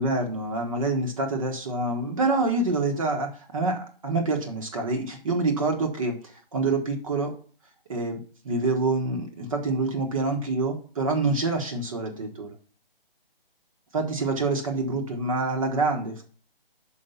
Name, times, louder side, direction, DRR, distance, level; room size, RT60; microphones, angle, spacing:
voice 1, 0.0-6.2 6.5-7.3 7.9-8.2 8.4-12.5 13.9-16.2, right 3 dB, 35° right, 4 dB, 1.2 m, -26 dB
5.7 x 5.1 x 6.7 m, 0.41 s
figure-of-eight pair, 155°, 29 cm